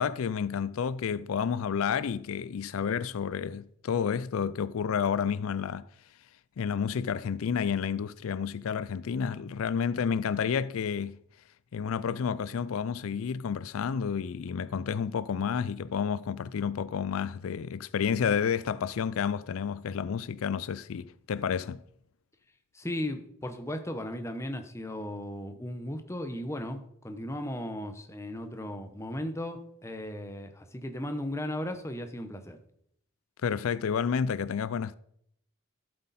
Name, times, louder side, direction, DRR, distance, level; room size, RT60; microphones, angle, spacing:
voice 1, 0.0-5.9 6.6-11.2 11.7-21.8 33.4-34.9, left 7 dB, 85° left, 0.4 m, -30 dB
voice 2, 22.7-32.6, left 1 dB, 15° left, 1.0 m, -36 dB
12.5 x 7.8 x 4.2 m
head